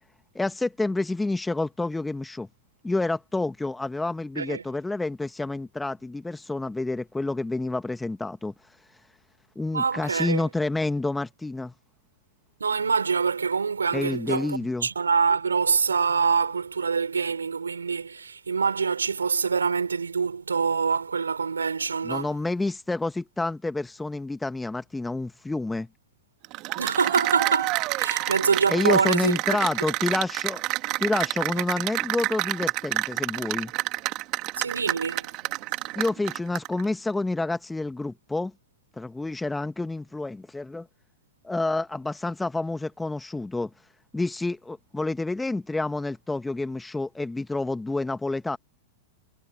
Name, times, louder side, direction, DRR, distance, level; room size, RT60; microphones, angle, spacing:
voice 1, 0.3-2.5 2.8-8.5 9.5-11.7 13.9-14.9 22.0-25.9 28.7-30.6 31.0-33.7 35.9-38.5 39.0-40.9 41.4-43.7 44.1-48.6, left 2 dB, 10° left, 1.5 m, -28 dB
voice 2, 9.7-10.4 12.6-22.3 26.8-29.6 34.6-35.3, right 5 dB, 85° right, 3.7 m, -25 dB
Cheering / Applause, 26.4-36.8, right 21 dB, 45° right, 2.0 m, -28 dB
hypercardioid pair, 100°, 0 cm